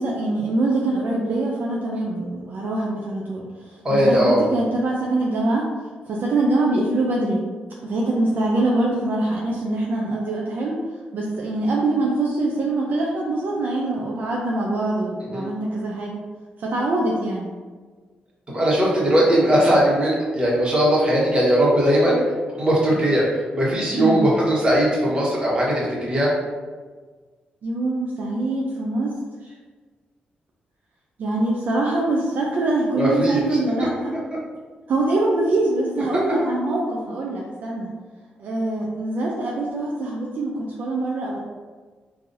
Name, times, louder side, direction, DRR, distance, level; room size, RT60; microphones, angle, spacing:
voice 1, 0.0-5.7 6.1-7.4 7.8-10.8 11.1-16.2 16.6-17.5 23.9-24.2 27.6-29.2 29.4-29.5 31.2-34.1 34.9-37.9 38.4-41.4, right 2 dB, 65° right, -3 dB, 0.5 m, -24 dB
voice 2, 3.8-4.4 15.2-15.4 18.5-22.2 22.6-23.3 23.5-26.3 33.0-33.4, equal, 30° right, -6 dB, 1.3 m, -19 dB
3.8 x 2.7 x 2.6 m, 1.4 s
cardioid pair, 85°, 3 cm